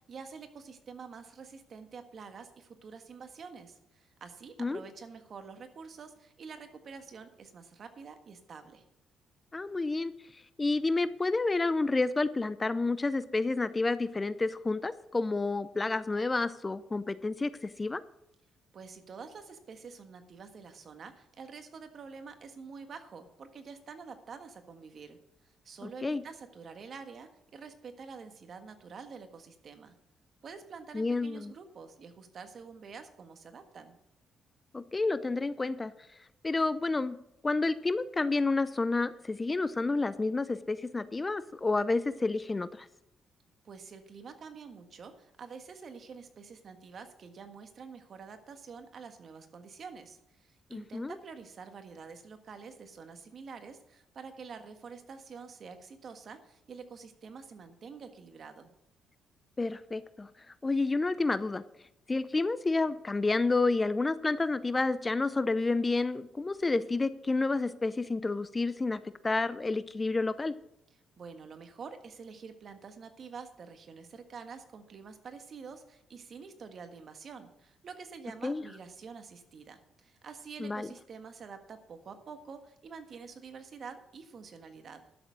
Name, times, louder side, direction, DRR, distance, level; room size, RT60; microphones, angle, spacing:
voice 1, 0.0-8.8 18.7-25.2 25.4-30.0 30.4-34.0 43.6-58.7 71.2-85.0, right 5 dB, 50° right, 7 dB, 1.6 m, -47 dB
voice 2, 9.5-10.1 10.6-18.0 26.0-26.2 30.9-31.5 34.7-35.9 36.4-37.2 37.4-42.9 50.7-51.2 59.6-60.3 60.6-61.6 62.1-70.5 78.4-78.6 80.6-80.9, left 3 dB, 25° left, 15 dB, 0.6 m, -30 dB
12.0 x 7.0 x 6.3 m, 0.82 s
cardioid pair, 90°, 0 cm